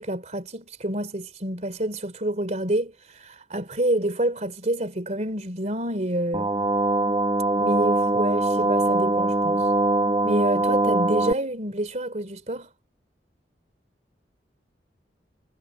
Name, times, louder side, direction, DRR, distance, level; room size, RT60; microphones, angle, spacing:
voice 1, 0.0-6.5 7.6-9.7 10.2-12.7, right 1 dB, 40° right, 3.3 m, -28 dB
sound 1, 6.3-11.3, right 2 dB, 25° right, 1.3 m, -22 dB
head